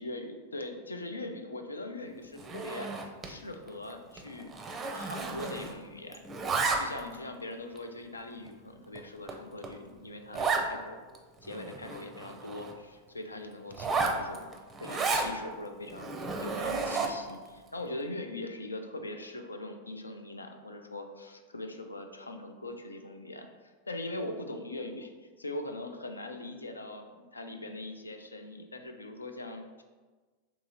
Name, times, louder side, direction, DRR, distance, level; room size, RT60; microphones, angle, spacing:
voice 1, 0.0-2.9 3.2-4.5 4.9-6.3 6.8-11.1 11.4-14.5 14.8-16.1 16.4-25.1 25.4-29.8, left 2 dB, 80° left, 6 dB, 0.4 m, -41 dB
Zipper (clothing), 2.4-3.4 3.7-3.9 4.2-5.9 6.1-7.2 7.8-7.9 8.5-8.6 9.0-9.1 9.3-9.4 9.6-9.7 10.3-10.7 11.1-11.2 11.4-12.7 13.7-15.3 15.9-17.3, right 4 dB, 20° right, 0.5 m, -32 dB
3.6 x 2.9 x 4.1 m, 1.4 s
figure-of-eight pair, 90°, 0 cm